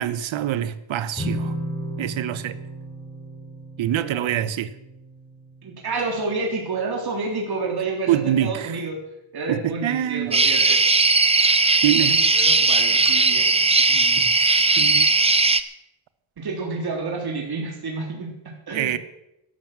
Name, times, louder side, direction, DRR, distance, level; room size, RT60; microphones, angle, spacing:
voice 1, 0.0-1.5 2.0-2.6 3.8-4.7 8.1-8.7 9.5-10.8 11.8-12.2 14.2-15.1 18.7-19.0, right 11 dB, 75° right, 1.2 m, -25 dB
sound 1, 1.1-7.6, right 1 dB, 10° left, 4.2 m, -35 dB
voice 2, 5.6-9.0 9.3-10.8 12.0-14.3 16.4-19.0, right 3 dB, 50° right, 3.6 m, -30 dB
sound 2, 10.3-15.6, right 3 dB, 15° right, 0.8 m, -18 dB
12.5 x 12.0 x 7.6 m
cardioid pair, 105°, 47 cm